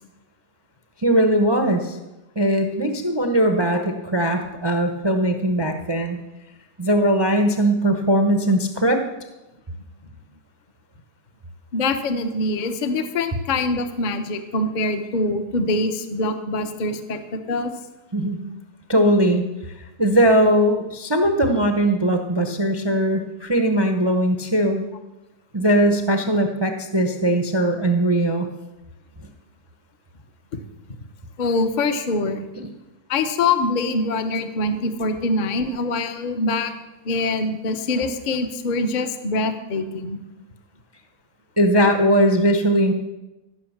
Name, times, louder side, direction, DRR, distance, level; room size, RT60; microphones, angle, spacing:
voice 1, 1.0-2.0 2.4-6.2 6.8-9.0 18.1-18.4 18.9-19.4 19.8-24.9 25.5-28.5 41.6-42.9, right 1 dB, 25° right, 5 dB, 0.5 m, -19 dB
voice 2, 11.7-17.7 30.5-30.6 31.4-32.4 33.1-36.7 37.0-40.2, left 2 dB, 40° left, 8 dB, 0.7 m, -24 dB
15.0 x 6.2 x 7.2 m, 1.0 s
omnidirectional pair, 1.9 m